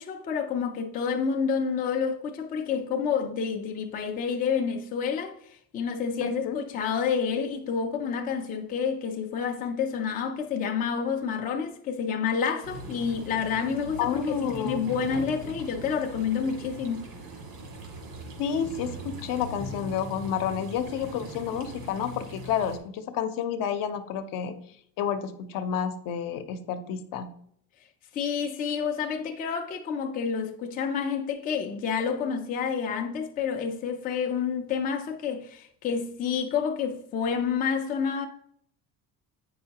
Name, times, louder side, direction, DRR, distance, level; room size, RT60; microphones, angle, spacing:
voice 1, 0.0-17.0 28.1-38.3, left 6 dB, 25° left, 0.4 m, -29 dB
voice 2, 6.2-6.6 14.0-14.8 18.4-24.5 25.0-27.3, left 8 dB, 65° left, 0.7 m, -30 dB
sound 1, 12.6-22.8, right 1 dB, 80° right, 1.7 m, -41 dB
7.9 x 5.4 x 2.8 m
cardioid pair, 175°, 36 cm